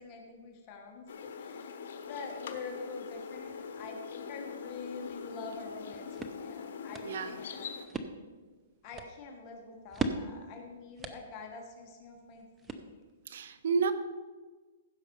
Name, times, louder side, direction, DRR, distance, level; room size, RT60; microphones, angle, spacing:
voice 1, 0.0-1.7 2.0-7.7 8.8-13.0, left 4 dB, 30° left, 2 dB, 1.4 m, -46 dB
sound 1, 1.1-7.8, left 6 dB, 65° left, 1.3 m, -43 dB
sound 2, 5.7-13.3, right 3 dB, 10° right, 0.7 m, -42 dB
voice 2, 7.0-7.4 13.3-13.9, right 5 dB, 65° right, 12 dB, 1.1 m, -30 dB
15.5 x 6.6 x 5.3 m, 1.4 s
hypercardioid pair, 160°, 0 cm